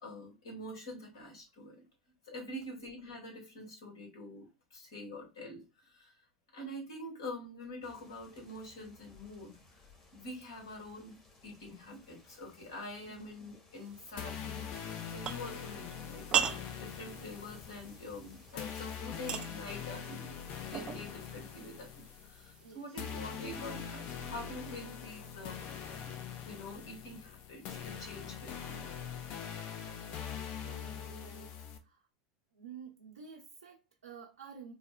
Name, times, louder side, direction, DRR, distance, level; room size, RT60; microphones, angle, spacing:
voice 1, 0.0-1.8 2.2-6.2 6.5-9.6 10.1-11.2 11.4-14.7 15.1-20.4 20.7-21.9 22.2-28.9, left 1 dB, 70° left, 1.7 m, -46 dB
sound 1, 7.8-19.0, left 2 dB, 35° left, 1.5 m, -60 dB
sound 2, 13.7-23.3, right 8 dB, 35° right, 0.3 m, -41 dB
sound 3, 14.2-31.8, left 8 dB, 50° left, 0.5 m, -43 dB
voice 2, 22.6-23.3 30.6-31.5 31.8-32.1 32.5-34.7, right 6 dB, 80° right, 0.9 m, -51 dB
4.1 x 2.1 x 2.4 m
hypercardioid pair, 80°, 3 cm